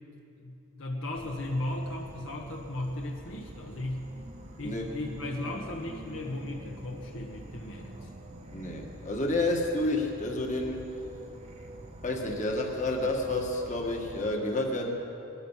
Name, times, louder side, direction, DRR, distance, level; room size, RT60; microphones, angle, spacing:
voice 1, 0.4-4.1 4.6-8.1, left 1 dB, 60° left, 0 dB, 1.3 m, -36 dB
Insect / Frog, 1.1-14.3, right 1 dB, 30° right, 1.1 m, -46 dB
voice 2, 8.5-11.0 12.0-14.9, left 2 dB, 35° left, 1 dB, 1.7 m, -30 dB
20.0 x 13.0 x 5.7 m, 2.8 s
head